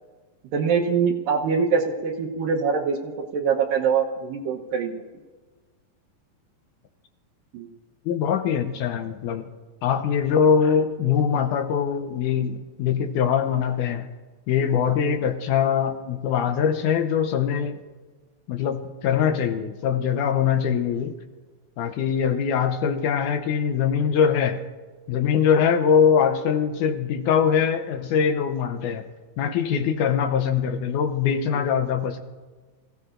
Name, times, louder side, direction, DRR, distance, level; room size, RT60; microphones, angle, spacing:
voice 1, 0.5-4.9 7.5-7.7 15.0-15.1 29.7-29.9, right 6 dB, 75° right, 0 dB, 2.5 m, -24 dB
voice 2, 8.1-9.5 9.8-14.1 14.5-17.8 18.5-21.1 21.8-24.6 25.1-29.0 29.4-32.2, left 7 dB, 75° left, 6 dB, 2.0 m, -22 dB
25.5 x 16.0 x 2.5 m, 1.4 s
omnidirectional pair, 4.1 m